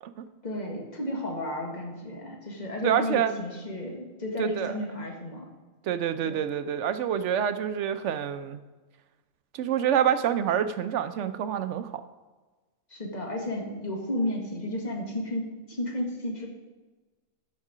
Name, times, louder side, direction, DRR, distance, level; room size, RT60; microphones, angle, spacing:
voice 1, 0.4-5.5 6.2-6.4 12.9-16.5, left 1 dB, 30° left, -1 dB, 1.6 m, -33 dB
voice 2, 2.8-3.3 4.4-4.7 5.8-8.6 9.5-12.0, right 9 dB, 65° right, 11 dB, 0.8 m, -27 dB
13.0 x 4.5 x 4.9 m, 1.3 s
omnidirectional pair, 1.5 m